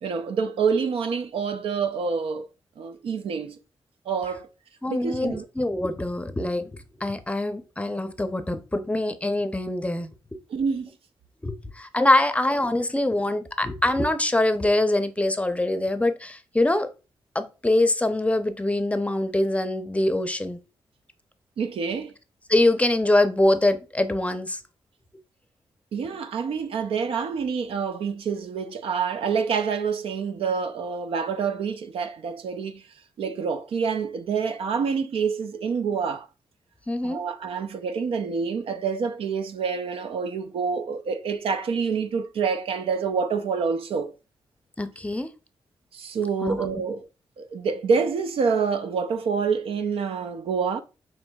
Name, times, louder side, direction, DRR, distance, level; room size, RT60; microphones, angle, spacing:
voice 1, 0.0-2.5 2.8-3.6 4.1-4.5 4.9-5.5 10.5-10.9 21.6-22.1 25.9-32.8 33.2-36.3 37.0-44.1 45.9-47.0 47.4-50.8, right 5 dB, 75° right, 0.5 m, -27 dB
voice 2, 4.8-6.7 7.0-10.1 11.4-16.9 17.3-20.6 22.5-24.6 36.9-37.2 44.8-45.3 46.4-46.6, left 1 dB, 15° left, 0.6 m, -24 dB
6.3 x 3.0 x 2.3 m
cardioid pair, 60°, 10 cm